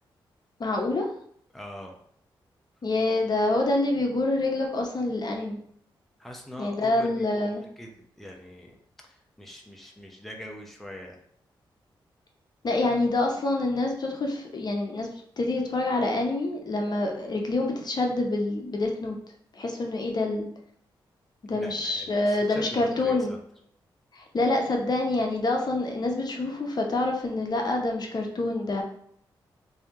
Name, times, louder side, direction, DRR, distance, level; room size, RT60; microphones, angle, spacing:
voice 1, 0.6-1.1 2.8-5.6 6.6-7.6 12.6-15.1 15.4-19.2 19.5-20.5 21.4-23.4 24.1-28.8, left 2 dB, 50° left, 1 dB, 0.7 m, -26 dB
voice 2, 1.5-2.0 6.2-7.9 8.2-8.8 9.0-11.2 21.5-23.4, equal, ahead, 1 dB, 0.7 m, -43 dB
3.2 x 2.7 x 3.6 m, 0.64 s
cardioid pair, 60°, 9 cm